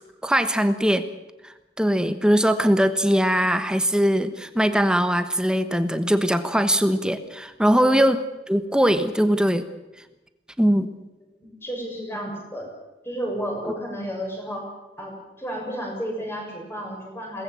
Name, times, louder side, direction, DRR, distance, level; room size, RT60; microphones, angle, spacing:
voice 1, 0.2-1.1 1.4-8.2 8.5-9.7 10.6-10.9, equal, 5° right, 10 dB, 1.2 m, -21 dB
voice 2, 7.7-8.0 11.4-12.7 13.0-14.7 15.0-17.4, equal, 15° left, 0 dB, 6.9 m, -32 dB
23.0 x 19.5 x 7.7 m, 1.0 s
head